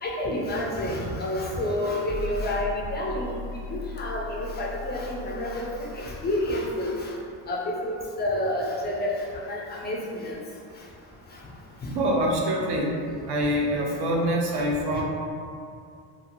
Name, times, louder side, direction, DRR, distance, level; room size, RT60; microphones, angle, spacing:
voice 1, 0.0-3.4 3.7-7.1 7.5-10.4 11.3-11.4 14.5-14.6 15.0-15.1, left 1 dB, 25° left, -3 dB, 0.3 m, -29 dB
sound 1, 2.1-7.1, left 2 dB, 10° right, 0.8 m, -38 dB
voice 2, 11.9-12.9 13.3-15.0, equal, 55° right, -1 dB, 0.5 m, -25 dB
2.8 x 2.3 x 2.6 m, 2.4 s
cardioid pair, 120°, 50 cm